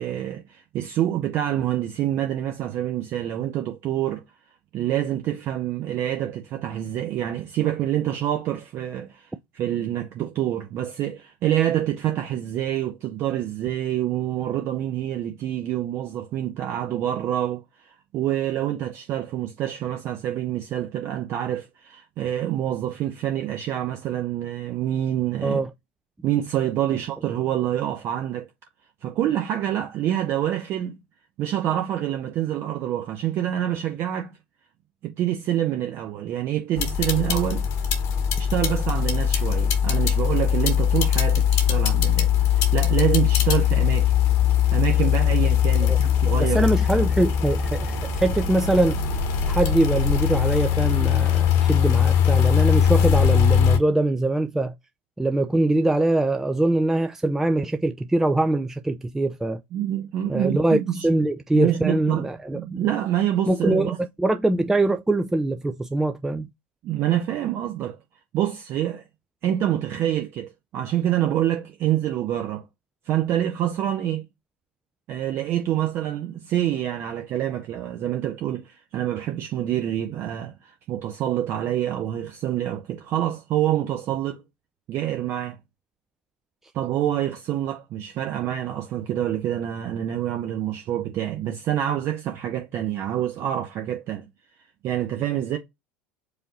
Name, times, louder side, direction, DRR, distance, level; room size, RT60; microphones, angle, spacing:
voice 1, 0.0-4.2 4.7-25.6 26.2-28.5 29.0-31.0 31.4-34.4 35.0-37.7 38.4-44.1 44.7-46.7 47.0-47.3 59.7-61.1 61.5-64.0 66.8-68.0 68.3-69.0 69.4-72.6 73.1-74.2 75.1-84.4 84.9-85.6 86.7-94.3 94.8-95.6, right 12 dB, 45° right, 0.7 m, -26 dB
sound 1, 36.8-53.8, left 8 dB, 50° left, 1.0 m, -21 dB
voice 2, 46.5-49.0 49.5-54.7 55.2-59.6 60.3-62.8 63.5-66.5, right 2 dB, 5° right, 0.4 m, -23 dB
4.9 x 2.7 x 2.8 m
figure-of-eight pair, 70°, 6 cm